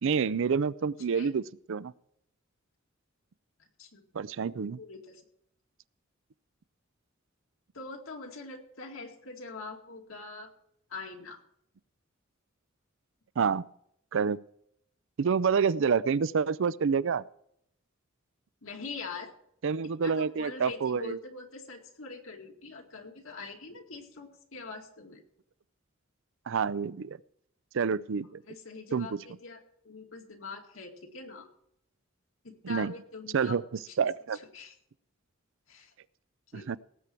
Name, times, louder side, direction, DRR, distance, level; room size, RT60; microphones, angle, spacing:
voice 1, 0.0-1.4 1.7-1.9 4.1-4.8 13.4-13.7 14.1-14.4 15.2-17.2 19.6-21.2 26.5-27.2 27.7-28.4 28.9-29.2 32.7-32.9 33.3-33.6 34.0-34.4 36.5-36.8, right 6 dB, 65° right, 18 dB, 0.5 m, -28 dB
voice 2, 3.6-4.1 4.8-5.2 7.7-10.5 10.9-11.4 18.6-19.3 20.0-25.2 28.5-31.5 32.4-33.6 33.9-34.0 34.3-34.8 35.7-35.9 36.5-36.8, left 4 dB, 75° left, 2 dB, 2.2 m, -43 dB
18.0 x 8.4 x 4.5 m, 0.71 s
head